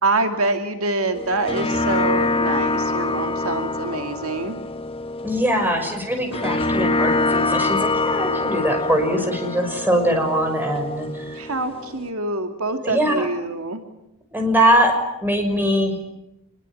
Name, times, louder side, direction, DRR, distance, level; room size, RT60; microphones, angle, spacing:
voice 1, 0.0-4.6 11.3-13.8, right 2 dB, 70° right, 6 dB, 2.5 m, -25 dB
sound 1, 1.1-12.1, left 2 dB, 25° left, 1.3 m, -25 dB
voice 2, 5.2-11.4 12.8-13.3 14.3-14.9 15.2-16.0, equal, 10° right, 4 dB, 5.9 m, -21 dB
27.0 x 21.5 x 10.0 m, 0.86 s
head